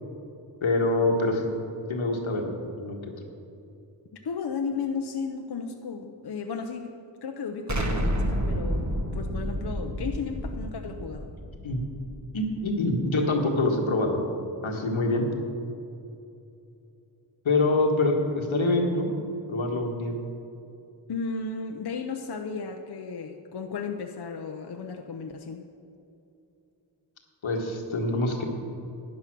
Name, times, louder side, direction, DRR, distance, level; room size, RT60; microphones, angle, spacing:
voice 1, 0.6-1.5 1.9-2.4 2.8-3.0 11.6-11.8 12.3-14.2 14.6-15.3 17.4-19.1 19.5-20.1 27.4-28.4, left 2 dB, 85° left, 1 dB, 1.6 m, -25 dB
voice 2, 4.2-8.9 9.1-11.3 21.1-25.7, left 5 dB, 55° left, 4 dB, 0.8 m, -34 dB
Explosion, 7.7-12.5, equal, 35° right, 1.4 m, -30 dB
11.0 x 9.6 x 6.1 m, 2.8 s
cardioid pair, 50°, 46 cm